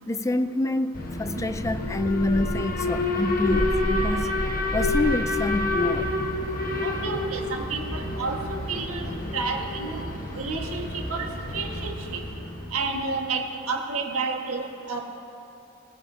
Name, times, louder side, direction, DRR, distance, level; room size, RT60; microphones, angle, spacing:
voice 1, 0.1-4.4 4.7-6.2, left 2 dB, 15° left, 0.3 m, -27 dB
Alarm, 0.9-13.0, left 2 dB, 40° left, 1.2 m, -28 dB
voice 2, 6.8-8.4 8.7-10.0 10.4-12.2 12.7-15.0, right 4 dB, 80° right, 1.6 m, -31 dB
20.0 x 18.5 x 2.8 m
head